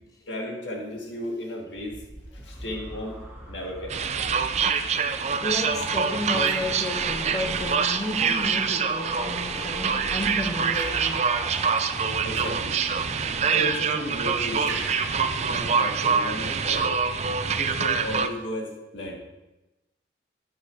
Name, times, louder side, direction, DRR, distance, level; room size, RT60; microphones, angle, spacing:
voice 1, 0.3-2.0 2.4-3.2 3.5-4.0 12.2-12.8 13.5-14.9 15.5-17.0 17.5-19.2, equal, 85° left, 1.9 m, -34 dB
sound 1, 1.7-14.4 14.7-15.1, equal, 10° right, 2.0 m, -41 dB
sound 2, 3.9-18.3, right 6 dB, 35° right, 0.4 m, -25 dB
Raindrop / Drip, 5.1-5.2 6.5-7.8 10.7-11.9 14.7-16.4, right 4 dB, 80° right, 1.5 m, -42 dB
voice 2, 5.4-11.2, left 1 dB, 20° left, 0.7 m, -32 dB
11.0 x 8.7 x 2.7 m
head